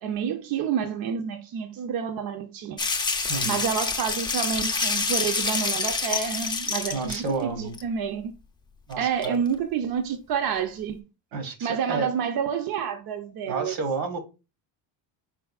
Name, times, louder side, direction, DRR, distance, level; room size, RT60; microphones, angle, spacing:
voice 1, 0.0-2.8 3.4-8.3 9.0-11.0 11.6-13.7, right 7 dB, 50° right, 0.5 m, -29 dB
sound 1, 2.8-7.3 7.7-7.8 8.9-9.0 9.2-9.3, left 4 dB, 10° left, 0.4 m, -27 dB
voice 2, 6.9-7.7 8.9-9.4 11.3-12.1 13.5-14.2, right 4 dB, 70° right, 1.4 m, -30 dB
4.7 x 3.9 x 2.3 m
cardioid pair, 130°, 46 cm